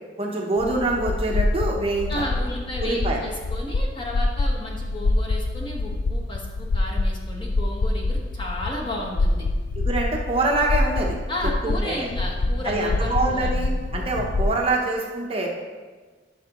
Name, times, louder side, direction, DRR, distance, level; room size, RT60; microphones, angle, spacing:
voice 1, 0.2-2.3 2.8-3.2 9.8-11.2 11.6-12.1 12.6-15.5, right 2 dB, 30° right, -1 dB, 0.8 m, -25 dB
sound 1, 0.6-14.6, left 2 dB, 75° left, 0.4 m, -26 dB
voice 2, 2.1-9.5 11.3-13.5, left 1 dB, 25° left, -2 dB, 1.2 m, -33 dB
11.5 x 5.9 x 3.0 m, 1.4 s
head